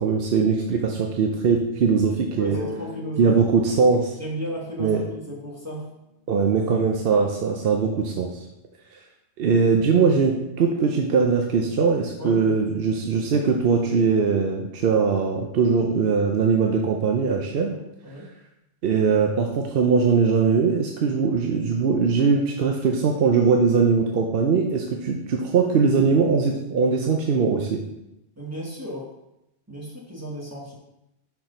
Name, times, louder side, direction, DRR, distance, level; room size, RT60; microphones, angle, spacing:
voice 1, 0.0-2.6 3.2-4.1 4.8-5.0 6.3-8.4 9.4-17.7 18.8-27.8, right 5 dB, 60° right, 2 dB, 0.8 m, -21 dB
voice 2, 2.4-3.4 3.7-3.8 4.2-5.9 12.2-12.5 17.7-18.3 28.4-29.1 29.7-30.8, right 1 dB, 15° right, -5 dB, 1.4 m, -34 dB
sound 1, 2.5-6.2, left 3 dB, 30° left, 1.2 m, -40 dB
5.9 x 4.4 x 5.1 m, 0.88 s
omnidirectional pair, 1.1 m